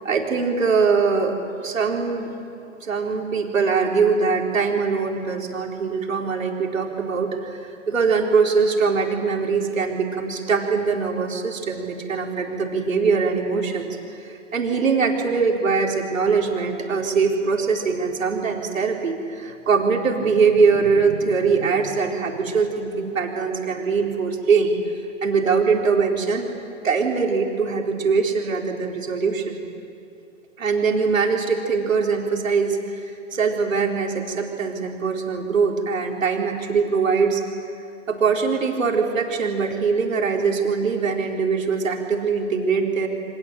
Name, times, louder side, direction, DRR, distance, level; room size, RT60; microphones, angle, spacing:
voice 1, 0.0-2.3 2.8-24.8 25.2-26.5 26.8-29.6 30.6-37.4 38.1-43.1, right 5 dB, 80° right, 1 dB, 4.6 m, -22 dB
29.0 x 25.0 x 7.8 m, 2.6 s
hypercardioid pair, 130°, 39 cm